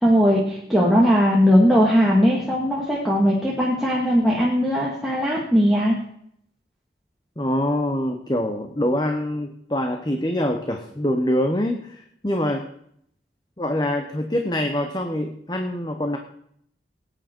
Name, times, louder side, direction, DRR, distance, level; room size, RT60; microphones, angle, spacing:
voice 1, 0.0-6.0, equal, ahead, -5 dB, 1.9 m, -19 dB
voice 2, 7.4-12.7 13.6-16.2, left 1 dB, 25° left, 5 dB, 1.0 m, -25 dB
18.5 x 9.1 x 4.5 m, 0.69 s
head